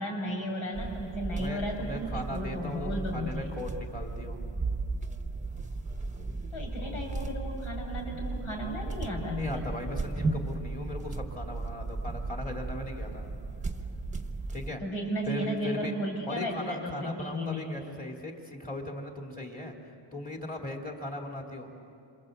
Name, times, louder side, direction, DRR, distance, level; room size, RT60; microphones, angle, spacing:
voice 1, 0.0-3.5 6.5-9.7 14.8-17.7, equal, 75° left, 0 dB, 6.5 m, -34 dB
sound 1, 0.7-14.7, right 3 dB, 15° right, 1.2 m, -35 dB
voice 2, 1.3-4.4 6.8-6.9 9.4-13.3 14.5-14.8 15.3-15.9 16.3-19.7 20.1-21.8, left 1 dB, 15° left, 1 dB, 3.0 m, -38 dB
28.0 x 26.5 x 8.1 m, 2.6 s
wide cardioid pair, 180°, 49 cm